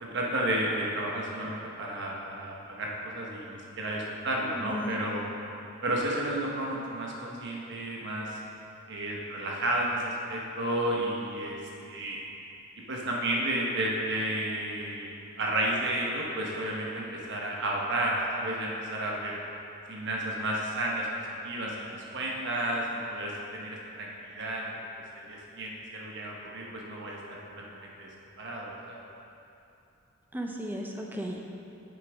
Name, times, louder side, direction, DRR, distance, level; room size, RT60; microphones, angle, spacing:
voice 1, 0.0-5.2 5.8-8.4 8.9-11.6 11.9-12.2 12.9-15.1 15.4-19.4 19.9-21.1 21.4-24.7 25.1-28.1 28.4-29.0, right 1 dB, 55° right, -3 dB, 1.1 m, -32 dB
voice 2, 4.6-5.0 30.3-31.4, equal, 10° right, 1 dB, 0.5 m, -34 dB
8.9 x 6.8 x 3.5 m, 2.8 s
head